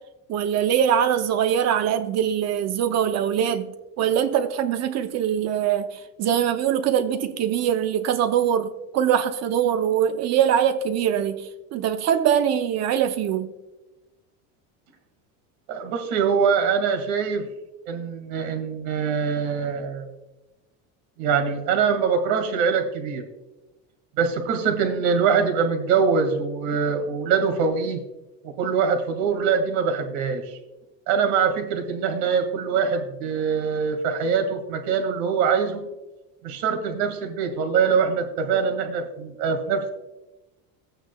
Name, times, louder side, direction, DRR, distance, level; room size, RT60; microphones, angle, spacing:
voice 1, 0.3-3.7 4.0-11.4 11.7-13.5, right 9 dB, 45° right, 0.6 m, -22 dB
voice 2, 15.7-17.5 17.9-20.1 21.2-23.2 24.2-28.0 28.4-30.6 31.1-35.8 36.4-39.9, right 6 dB, 75° right, 1.9 m, -23 dB
14.5 x 9.0 x 2.2 m
cardioid pair, 145°, 37 cm